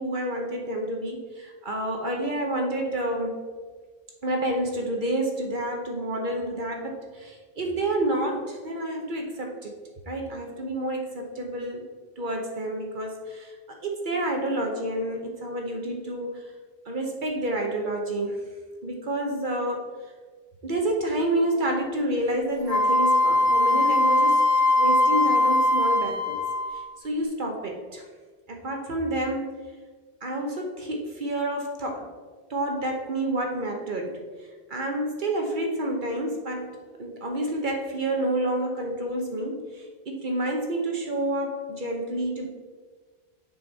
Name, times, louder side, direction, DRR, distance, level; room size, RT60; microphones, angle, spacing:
voice 1, 0.0-3.4 4.2-9.7 10.1-11.8 12.2-13.6 13.8-16.4 16.9-18.4 18.8-19.8 20.6-24.4 24.8-26.4 26.7-28.0 28.5-29.6 30.2-32.1 32.5-34.2 34.7-42.5, right 1 dB, 50° right, 2 dB, 1.0 m, -29 dB
Wind instrument woodwind instrument, 22.7-26.8, left 1 dB, 35° left, 1.2 m, -21 dB
7.0 x 5.2 x 4.0 m, 1.4 s
omnidirectional pair, 1.1 m